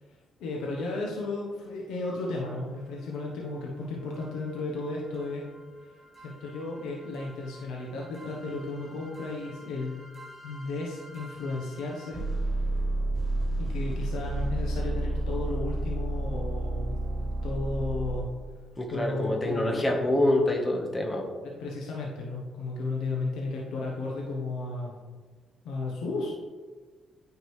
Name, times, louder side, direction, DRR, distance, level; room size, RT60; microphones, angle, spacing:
voice 1, 0.1-5.4 6.2-10.0 10.4-12.2 13.6-17.0 17.4-18.3 18.9-19.9 21.4-24.9 25.6-26.3, left 2 dB, 90° left, -2 dB, 1.0 m, -34 dB
sound 1, 3.2-3.3 3.6-3.7 4.2-18.6, right 1 dB, 15° right, 2.0 m, -33 dB
voice 2, 18.8-21.2, left 1 dB, 25° left, 1 dB, 1.2 m, -26 dB
9.3 x 5.1 x 3.2 m, 1.4 s
cardioid pair, 90°, 0 cm